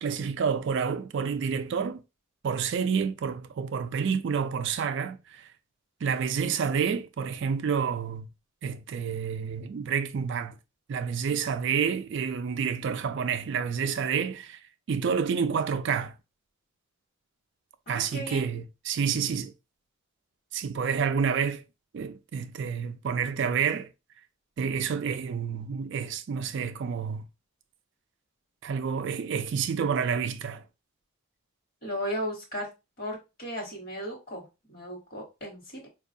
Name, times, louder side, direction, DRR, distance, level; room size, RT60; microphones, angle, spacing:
voice 1, 0.0-2.0 2.4-5.5 6.0-8.3 8.6-10.6 10.9-14.6 14.9-16.1 17.9-19.5 20.5-21.6 21.9-23.9 24.6-27.3 28.6-30.6, right 6 dB, 55° right, 0.3 m, -29 dB
voice 2, 17.9-18.5 31.8-32.7 33.0-35.9, equal, 45° left, 1.2 m, -36 dB
4.5 x 2.3 x 2.6 m
head